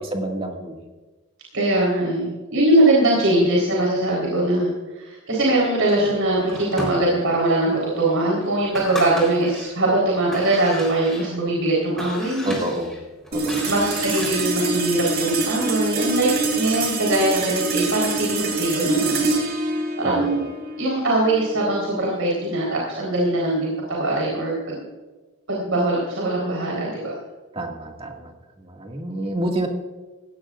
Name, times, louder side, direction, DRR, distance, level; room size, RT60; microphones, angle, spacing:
voice 1, 0.1-0.8 12.4-12.9 13.3-13.7 20.0-20.4 27.5-28.3 28.6-29.7, right 1 dB, 25° right, 1 dB, 2.0 m, -28 dB
voice 2, 1.5-12.7 13.4-16.3 16.5-19.3 20.0-20.4 20.8-24.8 25.5-27.1, right 1 dB, 75° right, -4 dB, 4.1 m, -21 dB
sound 1, 5.9-7.5 8.0-8.1 8.5-9.8 10.2-14.8, left 1 dB, ahead, 3.9 m, -35 dB
sound 2, 13.3-23.9, right 3 dB, 45° right, 3.3 m, -26 dB
18.5 x 16.5 x 2.5 m, 1.2 s
head